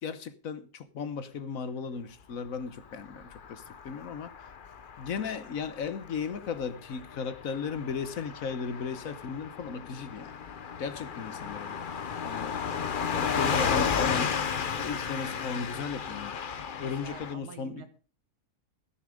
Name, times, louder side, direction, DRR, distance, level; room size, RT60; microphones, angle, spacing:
voice 1, 0.0-4.3 5.0-10.4 10.8-11.9 12.2-12.6 13.1-14.3 14.7-16.3 16.8-17.8, left 5 dB, 60° left, 1.3 m, -36 dB
Car passing by / Truck, 3.0-17.3, left 6 dB, 45° left, 0.7 m, -33 dB
voice 2, 16.8-17.9, right 7 dB, 85° right, 2.1 m, -47 dB
14.0 x 10.0 x 5.0 m
omnidirectional pair, 1.7 m